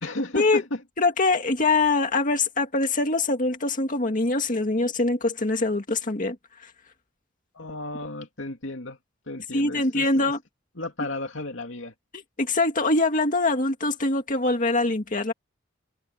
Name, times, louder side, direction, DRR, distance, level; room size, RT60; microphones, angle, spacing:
voice 1, 0.0-0.8 7.5-9.0 9.3-10.3 10.8-11.9, left 1 dB, 70° left, 2.7 m, -33 dB
voice 2, 1.0-6.7 9.5-10.4 12.1-15.3, left 3 dB, 45° left, 2.1 m, -23 dB
head